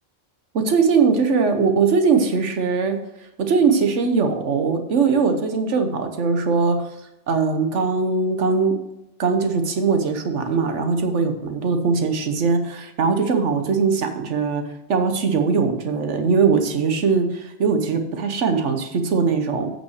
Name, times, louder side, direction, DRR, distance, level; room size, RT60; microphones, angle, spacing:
voice 1, 0.5-3.0 3.4-6.8 7.3-8.7 9.2-14.6 14.9-19.7, right 5 dB, 90° right, 7 dB, 1.4 m, -20 dB
8.4 x 6.1 x 6.4 m, 0.88 s
omnidirectional pair, 1.2 m